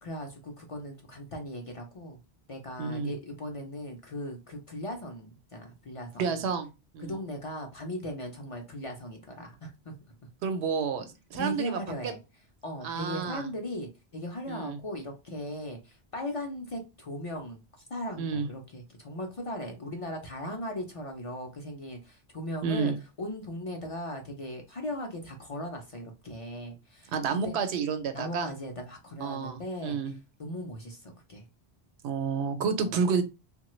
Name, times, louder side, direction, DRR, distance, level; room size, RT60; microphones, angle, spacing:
voice 1, 0.0-2.2 2.5-6.4 7.0-10.0 11.4-12.2 12.6-17.6 17.9-22.9 23.2-27.6 28.1-31.5 32.8-33.0, left 1 dB, 50° left, 0.4 m, -38 dB
voice 2, 2.8-3.1 6.2-6.7 6.9-7.1 10.4-11.8 12.8-13.5 14.5-14.8 18.2-18.5 22.6-23.0 27.1-28.5 29.2-30.1 32.0-33.2, right 5 dB, 85° right, 0.8 m, -30 dB
3.1 x 2.2 x 2.9 m
omnidirectional pair, 1.1 m